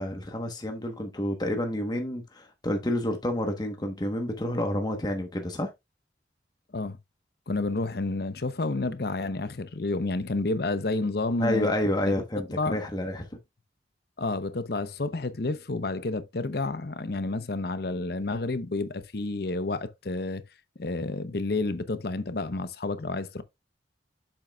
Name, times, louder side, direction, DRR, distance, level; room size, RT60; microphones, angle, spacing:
voice 1, 0.0-5.7 11.4-13.3, left 1 dB, 25° left, 1.1 m, -29 dB
voice 2, 7.5-11.7 12.1-12.2 12.5-12.8 14.2-20.4 20.8-23.4, left 2 dB, 60° left, 0.8 m, -30 dB
7.6 x 7.4 x 2.3 m
head